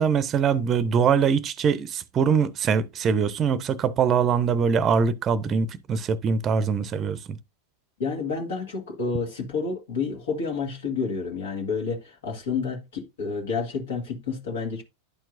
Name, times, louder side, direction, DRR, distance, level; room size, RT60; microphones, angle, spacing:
voice 1, 0.0-7.4, right 6 dB, 30° right, 0.6 m, -23 dB
voice 2, 8.0-14.8, left 5 dB, 65° left, 1.9 m, -29 dB
11.0 x 4.5 x 2.5 m
figure-of-eight pair, 90°, 0 cm